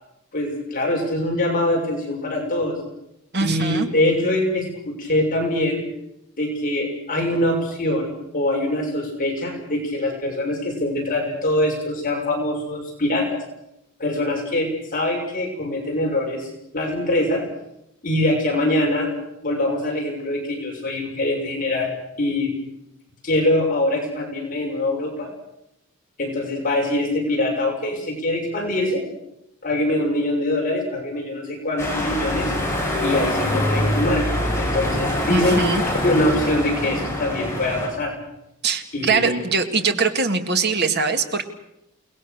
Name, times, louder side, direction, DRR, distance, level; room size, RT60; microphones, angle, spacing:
voice 1, 0.3-2.8 3.4-5.8 6.4-13.3 14.0-17.4 18.0-19.1 19.4-21.9 22.2-22.6 23.2-25.3 26.2-29.0 29.6-32.5 33.0-35.7 36.0-38.1 38.9-39.4, left 1 dB, 40° left, 0 dB, 6.3 m, -23 dB
voice 2, 3.3-3.9 35.3-35.8 38.6-41.5, right 4 dB, 50° right, 6 dB, 2.2 m, -22 dB
sound 1, 31.8-37.9, left 1 dB, 10° left, 6.0 m, -24 dB
29.0 x 20.0 x 6.7 m, 0.82 s
head